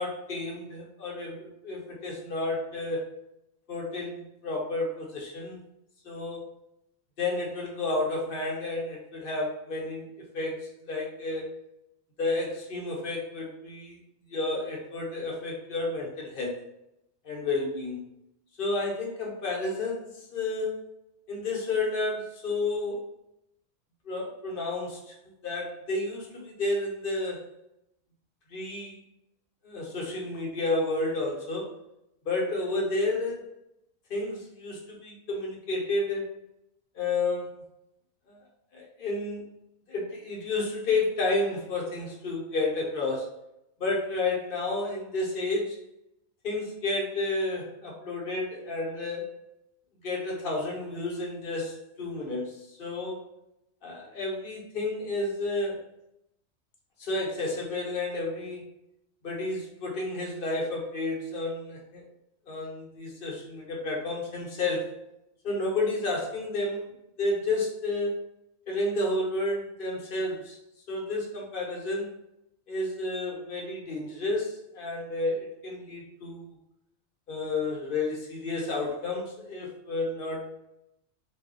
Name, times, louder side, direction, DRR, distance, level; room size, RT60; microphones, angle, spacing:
voice 1, 0.0-3.1 3.7-5.6 6.0-6.4 7.2-10.1 10.3-11.5 12.2-14.0 14.3-16.6 17.2-18.0 18.6-20.8 21.3-23.0 24.1-25.1 25.4-27.4 28.5-29.0 29.6-31.7 32.3-33.5 34.1-36.3 36.9-37.6 38.3-38.4 38.7-39.4 39.9-43.3 43.8-45.8 46.4-49.3 50.0-53.2 53.8-55.8 57.0-58.7 59.2-62.0 62.5-64.9 65.4-66.9 67.2-68.2 68.7-70.6 70.9-72.1 72.7-76.5 77.3-80.6, left 2 dB, 50° left, -2 dB, 0.8 m, -31 dB
2.3 x 2.1 x 3.7 m, 0.82 s
omnidirectional pair, 1.4 m